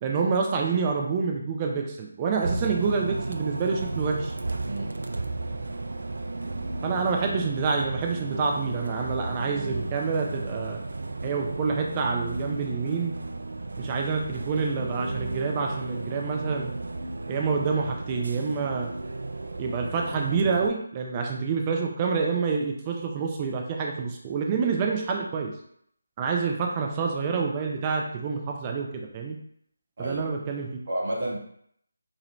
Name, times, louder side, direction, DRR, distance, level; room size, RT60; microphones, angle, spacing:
voice 1, 0.0-4.3 6.8-10.8 11.2-13.1 13.8-16.7 17.3-18.9 19.6-25.5 26.2-29.4 30.0-30.7, right 5 dB, 20° right, 1 dB, 0.6 m, -27 dB
Bus, 2.4-20.7, right 2 dB, 70° right, 0.3 m, -34 dB
voice 2, 4.6-5.1 30.0-30.3 30.9-31.4, right 1 dB, 45° right, -3 dB, 1.2 m, -31 dB
4.1 x 2.7 x 3.0 m, 0.68 s
figure-of-eight pair, 160°, 0 cm